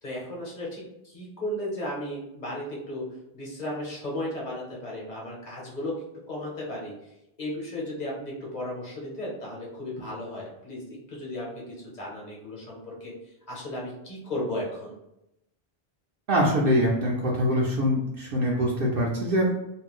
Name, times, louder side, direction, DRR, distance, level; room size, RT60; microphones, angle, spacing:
voice 1, 0.0-3.0 3.3-5.9 6.3-6.9 7.4-11.6 11.9-14.9, left 1 dB, 45° left, -4 dB, 1.0 m, -35 dB
voice 2, 16.3-19.5, equal, 65° right, -3 dB, 0.7 m, -24 dB
2.5 x 2.2 x 3.4 m, 0.87 s
omnidirectional pair, 1.1 m